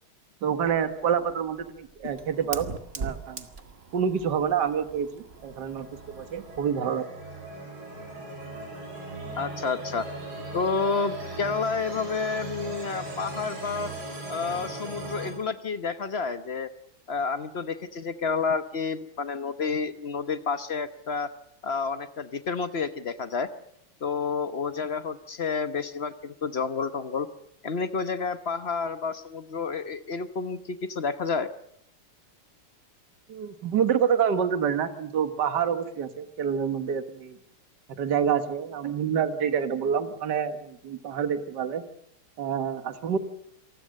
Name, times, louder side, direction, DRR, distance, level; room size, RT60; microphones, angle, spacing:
voice 1, 0.4-3.5 3.9-7.0 33.3-37.4 38.0-41.8 42.4-43.2, right 7 dB, 55° right, 9 dB, 2.0 m, -27 dB
Fire, 0.8-6.8, right 4 dB, 35° right, 1.2 m, -42 dB
sound 1, 5.3-15.3, right 2 dB, 70° right, 7.1 m, -38 dB
voice 2, 9.4-10.1 10.5-13.9 14.3-16.7 17.1-21.3 21.6-23.5 24.0-27.3 27.6-31.5, left 5 dB, 45° left, 10 dB, 0.8 m, -30 dB
27.5 x 19.5 x 6.6 m, 0.74 s
omnidirectional pair, 2.4 m